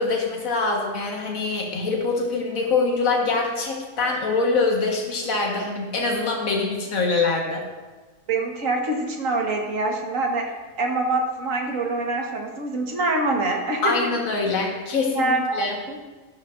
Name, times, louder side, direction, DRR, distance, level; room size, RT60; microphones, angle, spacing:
voice 1, 0.0-7.6 13.8-15.7, left 3 dB, 80° left, -1 dB, 1.8 m, -24 dB
voice 2, 8.3-10.5 10.8-13.9 15.1-16.0, right 2 dB, 70° right, 1 dB, 1.7 m, -25 dB
11.5 x 11.5 x 2.5 m, 1.3 s
omnidirectional pair, 1.4 m